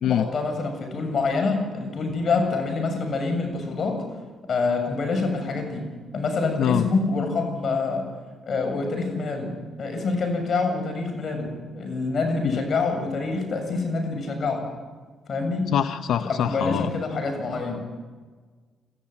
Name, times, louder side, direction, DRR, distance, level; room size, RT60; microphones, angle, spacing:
voice 1, 0.0-4.0 4.5-5.8 6.1-8.0 8.4-9.5 9.8-14.6 15.3-15.7 16.2-17.8, left 3 dB, 50° left, 4 dB, 7.4 m, -26 dB
voice 2, 15.7-16.9, left 9 dB, 75° left, 9 dB, 0.8 m, -24 dB
25.5 x 14.5 x 9.6 m, 1.4 s
cardioid pair, 90°, 0 cm